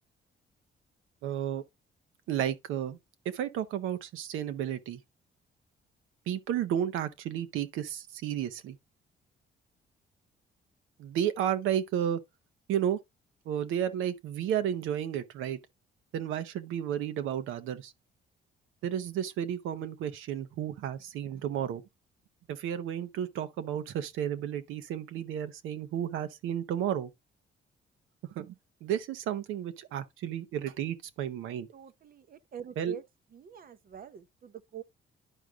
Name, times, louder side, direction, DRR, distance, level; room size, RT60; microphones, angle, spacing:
voice 1, 1.2-1.6 2.3-3.0 3.3-5.0 6.3-8.8 11.0-12.2 12.7-13.0 13.4-15.6 16.1-17.9 18.8-21.8 22.5-27.1 28.3-28.5 28.8-31.7 32.8-33.0, right 10 dB, 90° right, 0.8 m, -32 dB
voice 2, 31.7-33.0 33.3-34.8, right 9 dB, 45° right, 0.6 m, -45 dB
11.0 x 4.8 x 2.4 m
cardioid pair, 90°, 20 cm